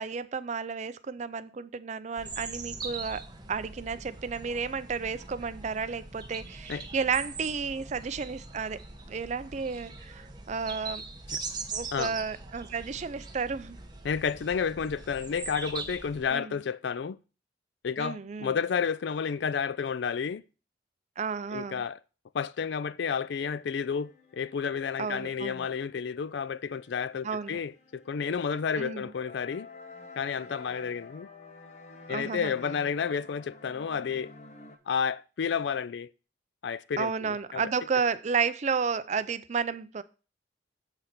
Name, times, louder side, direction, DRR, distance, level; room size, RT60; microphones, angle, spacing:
voice 1, 0.0-8.8 9.1-11.0 11.7-13.8 16.3-16.5 18.0-18.5 21.2-21.8 25.0-25.7 27.2-27.6 28.8-29.1 32.1-32.5 37.0-40.0, right 5 dB, 40° right, 0.4 m, -32 dB
sound 1, 2.2-16.3, right 4 dB, 20° right, 0.9 m, -41 dB
voice 2, 14.0-17.2 17.8-20.4 21.5-22.0 22.3-29.7 30.2-31.3 32.1-34.3 34.9-36.1 36.6-37.7, left 6 dB, 65° left, 0.4 m, -31 dB
sound 2, 23.2-34.8, left 3 dB, 35° left, 0.9 m, -51 dB
8.0 x 3.9 x 5.8 m
head